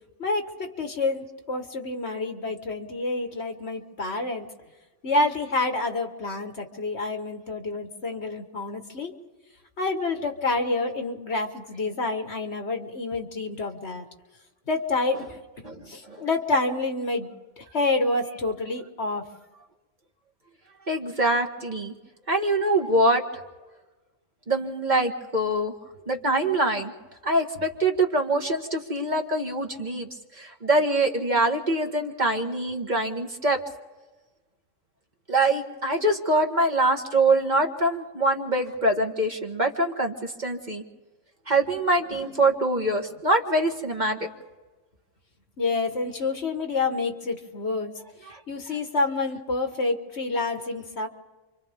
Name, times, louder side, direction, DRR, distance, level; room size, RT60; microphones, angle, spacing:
voice 1, 0.2-4.5 5.0-9.1 9.8-14.1 14.7-15.2 15.9-17.3 17.7-19.3 45.6-47.9 48.5-51.1, left 3 dB, 65° left, 5 dB, 1.9 m, -28 dB
voice 2, 15.6-16.2 20.9-21.9 22.3-23.2 24.5-25.7 26.1-26.9 27.2-30.1 30.4-33.6 35.3-40.8 41.5-44.3 48.3-48.4 48.7-48.8, right 2 dB, 40° right, 2 dB, 1.8 m, -24 dB
30.0 x 25.0 x 3.7 m, 1.2 s
omnidirectional pair, 1.2 m